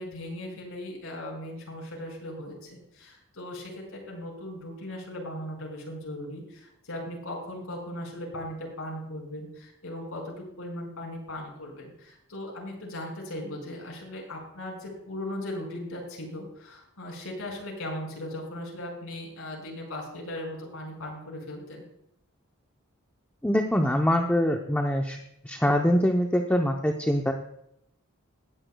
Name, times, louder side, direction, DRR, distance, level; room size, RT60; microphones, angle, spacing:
voice 1, 0.0-21.8, left 1 dB, 90° left, -1 dB, 5.2 m, -38 dB
voice 2, 23.4-25.2 25.4-27.3, equal, 10° left, 2 dB, 0.7 m, -24 dB
19.0 x 10.5 x 2.3 m, 0.78 s
head